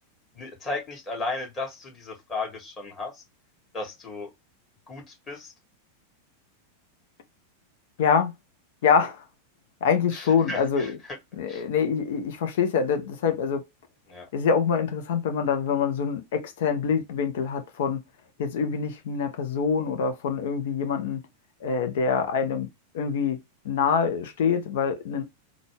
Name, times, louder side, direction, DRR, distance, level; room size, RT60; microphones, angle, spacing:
voice 1, 0.3-3.1 3.7-4.3 4.9-5.5 10.1-10.9 11.5-11.6 14.1-14.3, left 3 dB, 25° left, 2.1 m, -35 dB
voice 2, 8.0-8.3 8.8-9.2 9.8-11.0 11.3-13.6 14.3-18.0 18.4-21.2 21.6-22.7 22.9-23.4 23.6-25.2, left 6 dB, 55° left, 0.8 m, -25 dB
3.9 x 2.4 x 3.3 m
figure-of-eight pair, 90°, 0 cm